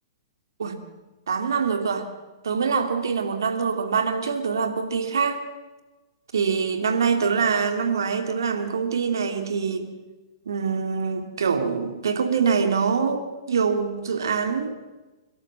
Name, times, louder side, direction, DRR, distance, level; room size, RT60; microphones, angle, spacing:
voice 1, 1.3-2.1 2.4-5.4 6.3-9.9 10.5-14.8, right 5 dB, 75° right, 7 dB, 2.7 m, -24 dB
30.0 x 12.5 x 7.6 m, 1.2 s
hypercardioid pair, 115°, 2 cm